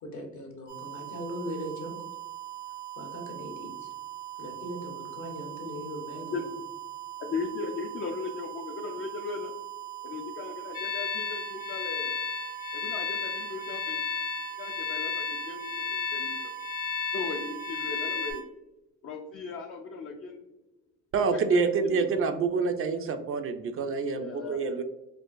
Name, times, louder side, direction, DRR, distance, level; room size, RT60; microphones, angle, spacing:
voice 1, 0.0-1.9 2.9-3.9 4.4-6.2, equal, 65° left, 2 dB, 1.1 m, -39 dB
sound 1, 0.7-18.4, right 14 dB, 75° right, 1.0 m, -41 dB
voice 2, 6.2-6.5 7.2-9.5 10.0-12.2 12.7-14.0 14.6-16.4 17.1-18.6 19.0-20.5 21.3-22.4 24.1-24.7, left 4 dB, 45° left, 2 dB, 0.4 m, -38 dB
sound 2, 10.7-18.3, left 6 dB, 90° left, 0.7 m, -33 dB
voice 3, 21.1-24.8, right 4 dB, 45° right, 7 dB, 0.4 m, -27 dB
4.5 x 2.3 x 2.5 m, 0.96 s
cardioid pair, 90°, 30 cm